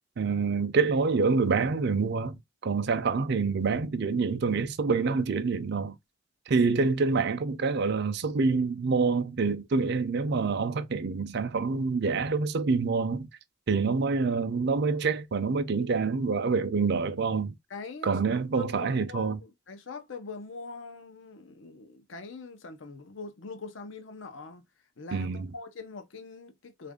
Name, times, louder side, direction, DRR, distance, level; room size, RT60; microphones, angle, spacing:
voice 1, 0.2-6.0 6.5-13.3 13.7-17.5 18.0-19.4 25.1-25.5, right 4 dB, 60° right, 0.5 m, -26 dB
voice 2, 17.7-18.2 18.5-24.6 25.0-26.9, left 4 dB, 70° left, 0.7 m, -43 dB
3.5 x 2.5 x 3.5 m
head